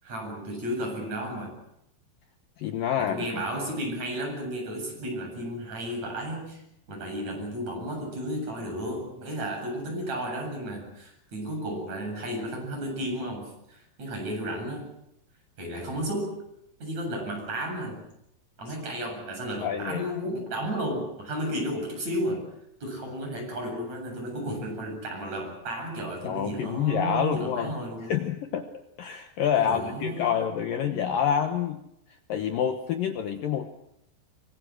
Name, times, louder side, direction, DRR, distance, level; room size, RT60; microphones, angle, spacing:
voice 1, 0.0-1.6 3.0-6.6 6.9-14.9 15.6-16.4 16.8-18.1 18.6-22.5 22.8-28.1 29.6-31.1, right 1 dB, 40° right, 2 dB, 9.1 m, -33 dB
voice 2, 2.6-3.4 19.6-20.1 26.2-27.7 28.0-28.7 29.0-31.8 32.3-33.7, left 8 dB, 65° left, 6 dB, 2.4 m, -27 dB
25.0 x 24.0 x 6.4 m, 0.78 s
omnidirectional pair, 4.9 m